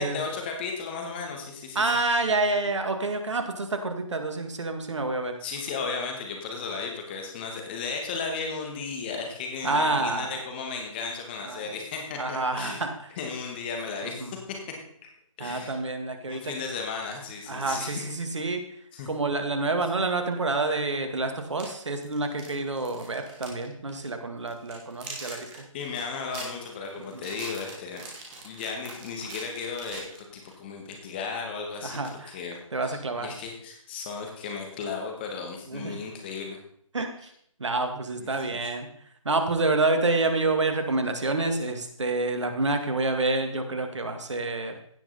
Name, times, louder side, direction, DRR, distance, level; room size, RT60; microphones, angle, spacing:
voice 1, 0.0-1.9 5.4-12.8 13.2-14.4 15.4-15.8 16.3-18.1 18.9-19.1 25.7-28.0 28.4-32.6 32.8-36.6 38.2-38.6, left 5 dB, 20° left, 2 dB, 1.7 m, -35 dB
voice 2, 1.8-5.4 9.6-10.3 11.5-11.6 12.2-12.9 14.0-14.3 15.4-16.5 17.5-18.6 19.1-25.7 27.0-27.2 31.8-32.3 32.7-33.3 35.7-36.0 36.9-37.3 37.6-38.9 39.2-44.8, right 3 dB, 60° right, 6 dB, 2.0 m, -28 dB
sound 1, 20.6-20.7 21.4-23.6 23.9-24.1 24.5-30.5, right 3 dB, 15° right, 2.0 m, -43 dB
16.0 x 5.9 x 4.2 m, 0.67 s
figure-of-eight pair, 160°, 17 cm